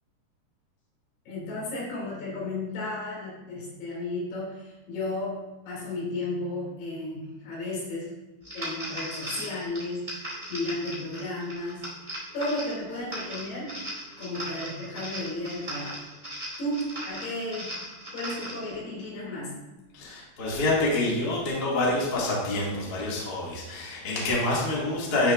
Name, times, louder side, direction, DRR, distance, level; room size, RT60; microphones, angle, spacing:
voice 1, 1.3-8.1 8.5-11.9 12.3-13.8 14.2-16.0 16.6-17.9 18.1-19.5, left 2 dB, 65° left, -5 dB, 4.4 m, -34 dB
sound 1, 8.4-18.7, right 1 dB, 30° right, 0.6 m, -38 dB
voice 2, 19.9-25.3, left 2 dB, 50° left, -5 dB, 1.2 m, -27 dB
11.5 x 6.5 x 2.5 m, 1.1 s
omnidirectional pair, 5.3 m